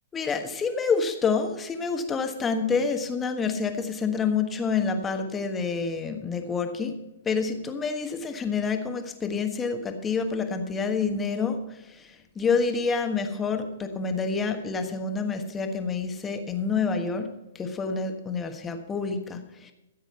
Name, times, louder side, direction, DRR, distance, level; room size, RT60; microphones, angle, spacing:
voice 1, 0.1-19.7, left 5 dB, 15° left, 6 dB, 1.4 m, -28 dB
15.0 x 7.7 x 5.6 m, 0.97 s
hypercardioid pair, 130°, 0 cm